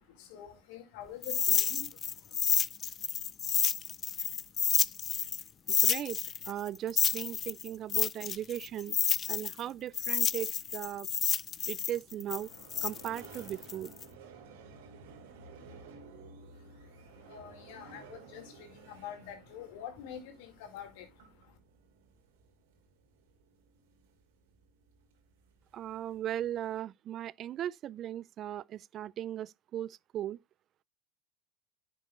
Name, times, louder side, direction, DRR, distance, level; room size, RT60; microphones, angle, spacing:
voice 1, 0.0-2.4 16.5-21.6, left 9 dB, 70° left, 2.2 m, -47 dB
sound 1, 1.2-5.4 5.7-9.6 9.9-14.0, left 8 dB, 35° left, 0.4 m, -30 dB
voice 2, 5.8-6.2 6.5-9.0 9.3-11.1 11.7-12.5 12.8-13.9 25.7-30.4, right 11 dB, 45° right, 0.3 m, -38 dB
sound 2, 11.9-26.8, right 4 dB, 75° right, 2.5 m, -54 dB
10.0 x 6.2 x 2.4 m
hypercardioid pair, 90°, 0 cm